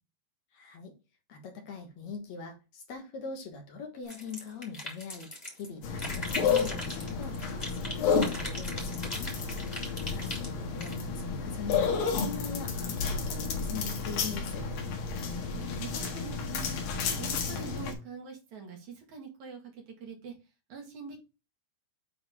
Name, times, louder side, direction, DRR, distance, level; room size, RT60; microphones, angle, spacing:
voice 1, 0.5-0.9 1.3-5.3 5.6-9.3 10.1-14.7, left 5 dB, 60° left, 2.2 m, -42 dB
sound 1, 4.1-5.7 6.0-7.9 8.2-10.9, left 1 dB, 15° left, 2.2 m, -39 dB
sound 2, 5.8-17.9, left 5 dB, 90° left, 3.3 m, -31 dB
voice 2, 15.4-16.8 17.2-20.3 20.7-21.2, right 5 dB, 60° right, 3.5 m, -44 dB
8.9 x 3.9 x 4.8 m
omnidirectional pair, 4.0 m